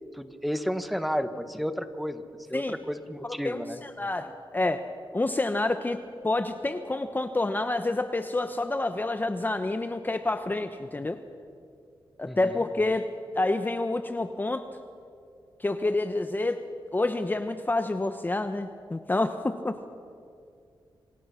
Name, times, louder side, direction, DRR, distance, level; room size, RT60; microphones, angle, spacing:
voice 1, 0.1-2.2 2.5-3.8 12.3-12.6, equal, ahead, 9 dB, 1.3 m, -32 dB
voice 2, 3.2-4.8 5.1-6.0 6.2-11.2 12.2-13.1 13.3-14.6 15.6-16.6 16.9-19.8, left 2 dB, 20° left, 8 dB, 0.9 m, -28 dB
28.0 x 23.5 x 5.8 m, 2.4 s
wide cardioid pair, 95°, 9 cm